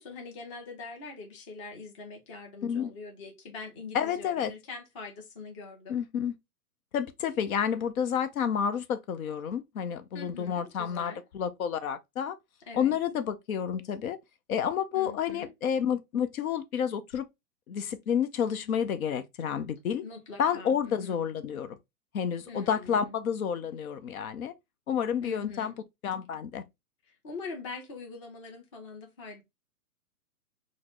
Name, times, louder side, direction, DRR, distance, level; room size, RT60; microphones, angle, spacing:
voice 1, 0.0-6.0 10.1-11.2 12.7-13.0 14.9-15.5 20.0-21.2 22.5-23.2 25.2-25.8 27.1-29.4, left 4 dB, 20° left, 0.5 m, -43 dB
voice 2, 3.9-4.5 5.9-6.3 6.9-12.4 12.7-14.2 14.5-17.2 17.7-20.0 20.4-21.8 22.1-24.5 24.9-25.7 26.0-26.6, left 8 dB, 65° left, 0.6 m, -30 dB
3.9 x 2.0 x 3.1 m
hypercardioid pair, 155°, 46 cm